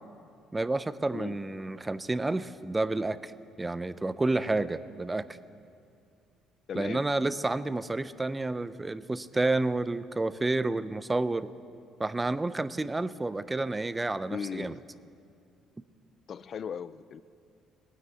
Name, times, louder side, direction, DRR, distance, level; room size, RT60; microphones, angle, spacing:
voice 1, 0.5-3.3 3.6-5.3 6.7-11.5 12.0-14.8, right 2 dB, 15° right, 0.4 m, -30 dB
voice 2, 1.1-1.4 6.7-7.1 14.3-14.9 16.3-17.2, left 7 dB, 45° left, 0.4 m, -37 dB
18.5 x 9.9 x 8.0 m
cardioid pair, 130°, 0 cm